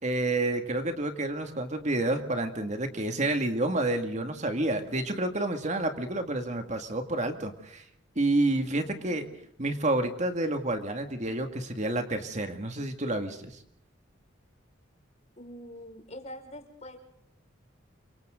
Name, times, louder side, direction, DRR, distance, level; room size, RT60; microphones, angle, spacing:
voice 1, 0.0-7.9 8.2-9.2 9.6-13.6, right 2 dB, 35° right, 6 dB, 2.2 m, -29 dB
voice 2, 8.8-9.3 15.4-17.0, equal, 35° left, 4 dB, 5.3 m, -45 dB
29.5 x 25.5 x 3.9 m, 0.67 s
head